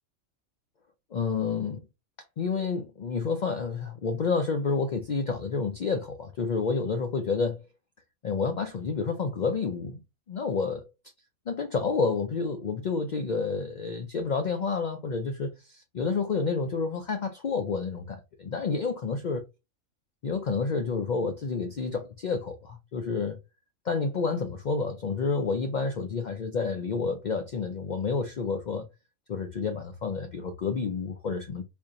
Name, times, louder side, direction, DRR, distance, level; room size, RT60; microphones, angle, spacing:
voice 1, 1.1-1.8 2.4-7.6 8.2-10.0 10.3-10.8 11.5-19.4 20.2-23.4 23.8-28.9 29.3-31.6, left 4 dB, 85° left, 0.4 m, -29 dB
4.2 x 2.7 x 2.5 m
omnidirectional pair, 1.4 m